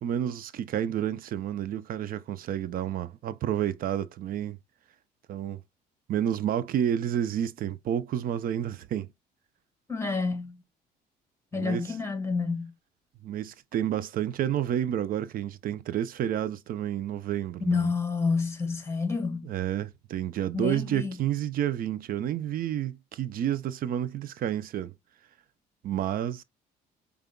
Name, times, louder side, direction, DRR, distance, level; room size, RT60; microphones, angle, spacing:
voice 1, 0.0-4.6 5.3-5.6 6.1-9.1 11.5-11.8 13.2-17.9 19.4-24.9 25.8-26.4, right 10 dB, 60° right, 0.6 m, -30 dB
voice 2, 9.9-10.6 11.5-12.7 17.6-19.5 20.5-21.2, left 4 dB, 15° left, 1.8 m, -29 dB
5.1 x 3.4 x 2.3 m
cardioid pair, 110°, 17 cm